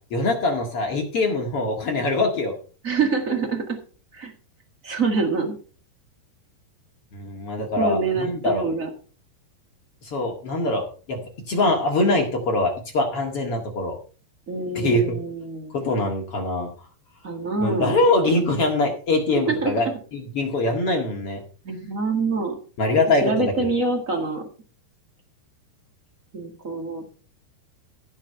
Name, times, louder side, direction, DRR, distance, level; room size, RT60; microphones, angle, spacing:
voice 1, 0.1-2.5 7.1-8.7 10.0-11.2 11.5-14.0 14.7-15.2 15.7-16.7 17.6-21.4 22.8-23.7, left 2 dB, 45° left, 1 dB, 2.3 m, -23 dB
voice 2, 2.8-3.8 4.1-4.3 4.8-5.6 7.8-8.9 14.5-15.7 17.2-17.9 19.3-19.7 21.6-22.6 23.2-24.4 26.3-27.1, right 4 dB, 60° right, 3 dB, 0.8 m, -25 dB
16.0 x 5.8 x 5.5 m, 0.39 s
omnidirectional pair, 4.8 m